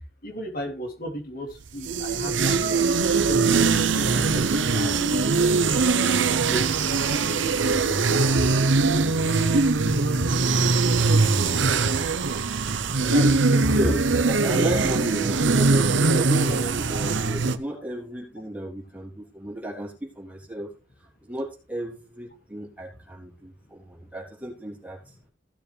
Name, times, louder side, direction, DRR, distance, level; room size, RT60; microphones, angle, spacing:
voice 1, 0.2-2.8 3.3-3.7 3.9-5.4 5.9-6.9 7.6-7.7 7.9-8.2 13.0-13.8, equal, 50° left, 3 dB, 2.8 m, -35 dB
sound 1, 1.6-17.6, right 4 dB, 80° right, 0.8 m, -21 dB
voice 2, 13.7-20.7 21.2-25.0, right 1 dB, 10° right, -3 dB, 3.4 m, -34 dB
16.0 x 6.9 x 3.4 m, 0.32 s
head